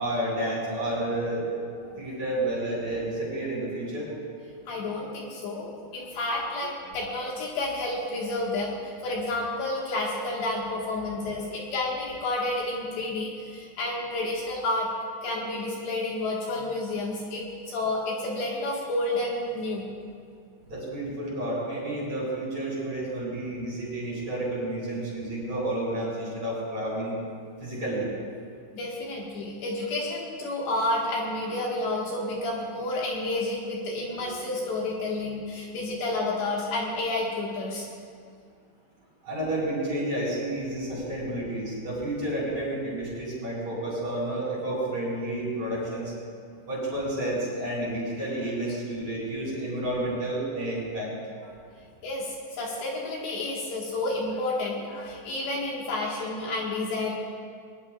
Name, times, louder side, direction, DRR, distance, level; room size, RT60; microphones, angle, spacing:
voice 1, 0.0-1.5 2.0-4.1 20.7-27.2 27.6-28.1 39.2-46.1 46.7-51.1, right 1 dB, 35° right, -6 dB, 5.9 m, -30 dB
voice 2, 4.7-14.9 15.2-19.9 28.7-37.9 52.0-57.2, left 2 dB, 65° left, -4 dB, 3.7 m, -30 dB
21.5 x 21.0 x 2.5 m, 2.2 s
omnidirectional pair, 5.7 m